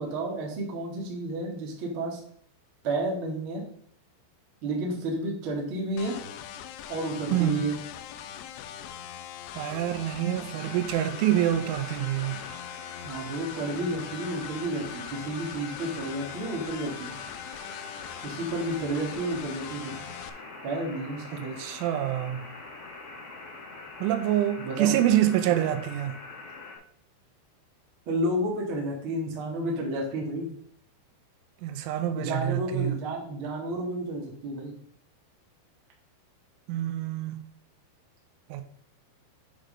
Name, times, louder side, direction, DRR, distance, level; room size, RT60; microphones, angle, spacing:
voice 1, 0.0-2.2 2.8-3.6 4.6-6.2 6.9-7.8 13.0-17.2 18.2-19.9 20.6-21.6 24.6-25.0 25.5-25.7 28.0-30.5 32.1-34.7, right 1 dB, 55° right, 1.4 m, -31 dB
sound 1, 6.0-20.3, left 10 dB, 85° left, 2.5 m, -41 dB
voice 2, 7.3-7.6 9.6-12.4 21.6-22.4 24.0-26.2 31.6-33.0 36.7-37.4 38.5-38.6, right 12 dB, 85° right, 3.2 m, -26 dB
sound 2, 10.6-26.8, left 3 dB, 60° left, 4.1 m, -44 dB
9.2 x 3.8 x 5.1 m
omnidirectional pair, 5.5 m